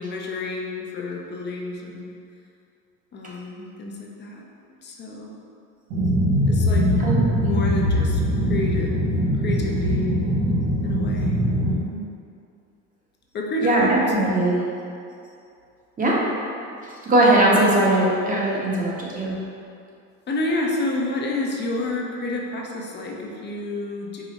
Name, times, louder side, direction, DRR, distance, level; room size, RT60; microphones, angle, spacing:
voice 1, 0.0-2.2 3.1-4.4 4.8-5.3 6.5-7.0 7.4-9.0 9.4-10.1 10.8-12.1 13.3-14.5 20.3-24.2, left 2 dB, 35° left, -1 dB, 0.6 m, -29 dB
sound 1, 5.9-11.8, equal, 85° right, 1.0 m, -21 dB
voice 2, 7.0-7.5 13.6-14.6 16.0-16.2 17.0-19.4, right 1 dB, 25° right, -5 dB, 0.9 m, -20 dB
4.8 x 2.0 x 3.9 m, 2.5 s
supercardioid pair, 100°, 32 cm